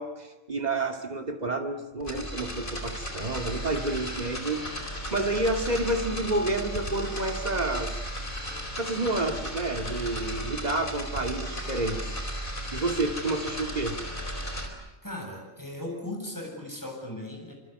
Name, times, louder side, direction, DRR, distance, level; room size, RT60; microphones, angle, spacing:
voice 1, 0.0-4.7 5.1-8.0 8.8-12.0 12.5-14.0, right 2 dB, 35° right, 4 dB, 2.6 m, -29 dB
sound 1, 2.0-14.7, equal, 45° left, 4.6 m, -35 dB
voice 2, 15.0-17.5, left 1 dB, 15° left, 1 dB, 8.0 m, -37 dB
27.0 x 26.5 x 8.3 m, 0.98 s
omnidirectional pair, 1.3 m